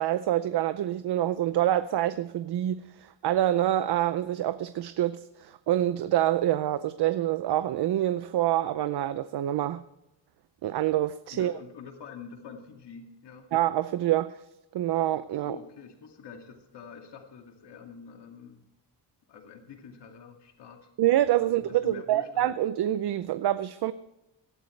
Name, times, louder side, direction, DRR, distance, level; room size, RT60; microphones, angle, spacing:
voice 1, 0.0-9.8 10.6-11.5 13.5-14.4 14.7-15.6 21.0-23.9, right 13 dB, 65° right, 0.6 m, -26 dB
voice 2, 11.3-13.5 15.4-18.6 19.3-20.9 21.4-22.5, left 6 dB, 70° left, 2.4 m, -46 dB
18.0 x 13.5 x 3.3 m
wide cardioid pair, 165°, 43 cm